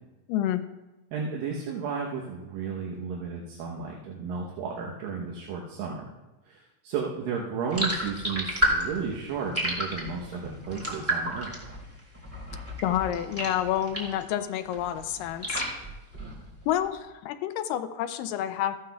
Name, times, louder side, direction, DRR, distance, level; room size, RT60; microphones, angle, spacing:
voice 1, 0.3-0.6 12.8-15.6 16.7-18.8, left 11 dB, 80° left, 8 dB, 2.0 m, -29 dB
voice 2, 1.1-6.1 6.5-11.6, right 5 dB, 75° right, -2 dB, 2.6 m, -33 dB
sound 1, 7.7-14.3 14.6-16.7, equal, 5° right, 1.2 m, -31 dB
14.5 x 11.5 x 2.3 m, 1.0 s
omnidirectional pair, 4.2 m